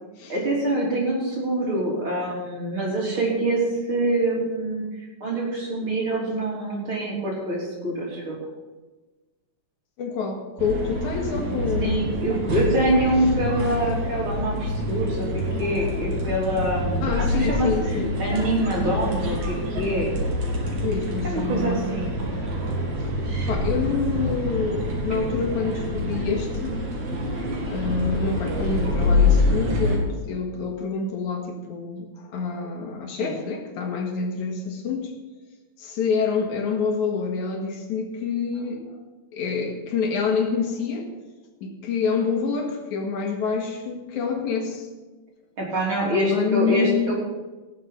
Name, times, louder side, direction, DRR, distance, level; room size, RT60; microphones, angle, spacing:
voice 1, 0.3-3.6 3.9-4.9 5.2-8.4 11.8-17.7 18.2-20.2 21.2-22.1 33.2-33.3 45.6-47.1, right 1 dB, 40° right, -3 dB, 4.2 m, -25 dB
voice 2, 10.0-12.0 17.0-18.2 20.8-22.0 22.7-22.8 23.5-26.8 27.7-35.1 35.8-39.0 39.3-41.1 41.6-44.9 46.0-47.1, left 5 dB, 75° left, 2 dB, 3.1 m, -27 dB
sound 1, 10.6-30.0, left 1 dB, 70° right, 3.6 m, -26 dB
17.5 x 7.3 x 5.7 m, 1.2 s
omnidirectional pair, 3.4 m